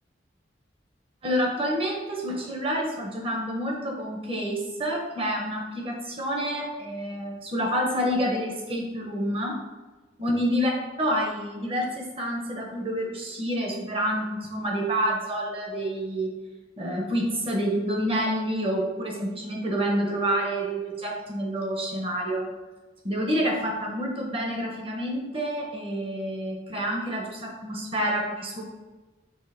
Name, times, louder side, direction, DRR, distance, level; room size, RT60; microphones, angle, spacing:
voice 1, 1.2-9.5 10.2-10.7 11.0-16.3 16.8-22.5 23.0-28.6, equal, 30° right, -1 dB, 1.2 m, -28 dB
5.5 x 3.6 x 5.1 m, 1.2 s
head